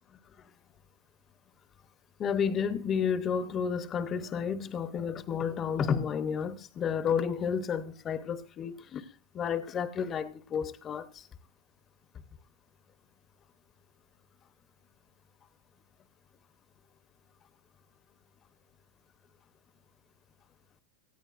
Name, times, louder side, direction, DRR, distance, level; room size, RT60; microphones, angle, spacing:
voice 1, 2.2-9.0 9.3-11.2, left 7 dB, 25° left, 0.8 m, -31 dB
18.0 x 13.0 x 2.5 m
supercardioid pair, 140°, 0 cm